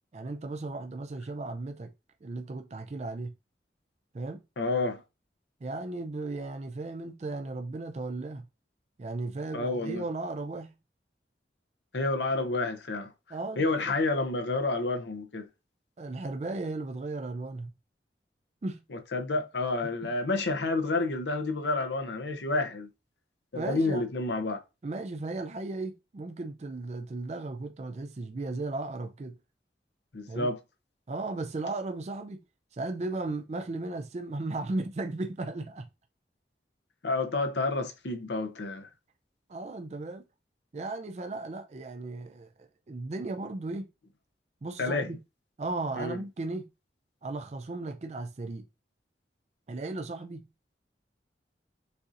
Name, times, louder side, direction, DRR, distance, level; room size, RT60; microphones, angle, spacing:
voice 1, 0.1-1.9 2.2-3.3 4.1-4.4 5.6-8.5 9.0-10.7 13.3-13.9 16.0-17.7 18.6-18.8 19.8-20.1 23.5-24.0 24.8-29.4 30.3-30.5 31.1-32.4 32.7-35.9 39.5-40.2 40.7-43.9 44.6-45.2 45.6-46.7 47.2-48.7 49.7-50.5, right 2 dB, 40° right, 0.4 m, -36 dB
voice 2, 4.6-5.0 9.5-10.0 11.9-13.1 13.6-15.5 18.9-22.9 23.5-24.6 30.1-30.6 37.0-38.9 44.8-45.1 46.0-46.2, left 2 dB, 85° left, 0.8 m, -29 dB
6.5 x 2.7 x 2.5 m
head